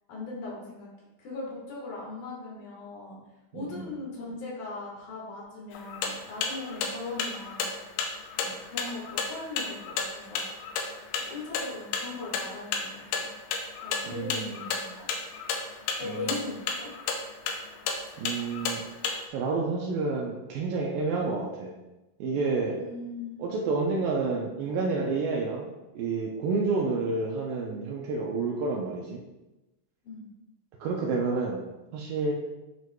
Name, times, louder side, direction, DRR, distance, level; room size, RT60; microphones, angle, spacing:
voice 1, 0.1-0.9 1.2-3.2 3.5-7.7 8.4-10.5 11.2-13.3 13.8-15.1 16.0-16.9 22.8-23.5 30.0-30.3, left 3 dB, 65° left, -4 dB, 2.9 m, -39 dB
voice 2, 3.5-3.9 14.2-14.6 16.0-16.4 18.2-18.8 19.3-21.8 22.2-22.8 23.4-29.2 30.8-31.6 31.9-32.3, right 3 dB, 80° right, -1 dB, 2.0 m, -29 dB
sound 1, 5.7-19.2, left 5 dB, 85° left, 2.7 m, -32 dB
10.5 x 4.6 x 2.2 m, 1.0 s
omnidirectional pair, 4.8 m